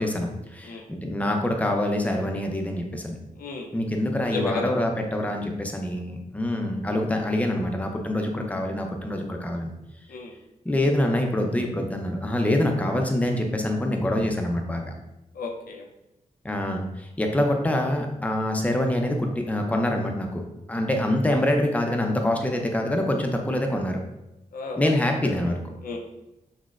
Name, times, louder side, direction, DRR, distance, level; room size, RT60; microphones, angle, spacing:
voice 1, 0.0-3.2 3.7-9.7 10.6-14.8 16.4-24.0 24.8-25.6, left 1 dB, 10° left, 2 dB, 0.5 m, -25 dB
voice 2, 3.4-3.7 4.3-4.7 10.1-10.3 15.3-15.9 24.5-24.9 25.2-25.3 25.8-26.0, left 4 dB, 85° left, 2 dB, 0.5 m, -33 dB
5.9 x 2.1 x 2.4 m, 0.91 s
wide cardioid pair, 105°, 15 cm